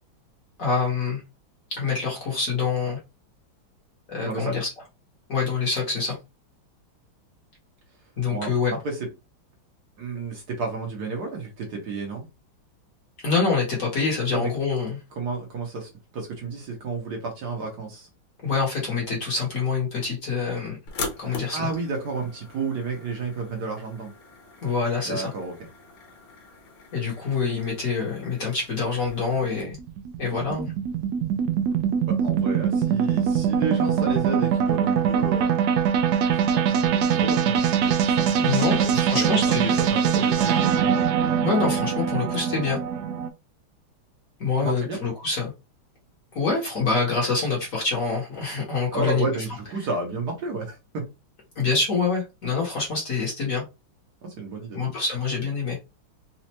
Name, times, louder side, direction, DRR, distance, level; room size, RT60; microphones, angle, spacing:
voice 1, 0.6-1.2 1.7-3.0 4.1-4.7 5.3-6.2 8.2-8.8 13.2-15.0 18.4-20.8 21.2-21.7 24.6-25.3 26.9-29.8 30.2-30.7 38.4-39.8 41.4-42.8 44.4-45.5 46.3-49.3 51.6-53.6 54.7-55.8, left 4 dB, 45° left, 1.3 m, -26 dB
voice 2, 4.1-4.6 8.3-9.1 10.0-12.2 14.3-14.5 15.2-15.9 16.1-18.1 21.2-24.1 25.0-25.7 32.1-35.6 36.3-40.8 44.6-45.0 48.5-48.6 48.9-51.0 54.2-54.8, right 3 dB, 60° right, 1.3 m, -32 dB
sound 1, 20.9-29.6, left 4 dB, 85° left, 1.8 m, -41 dB
sound 2, 29.1-43.3, right 8 dB, 85° right, 0.9 m, -23 dB
4.2 x 2.4 x 2.8 m
omnidirectional pair, 2.3 m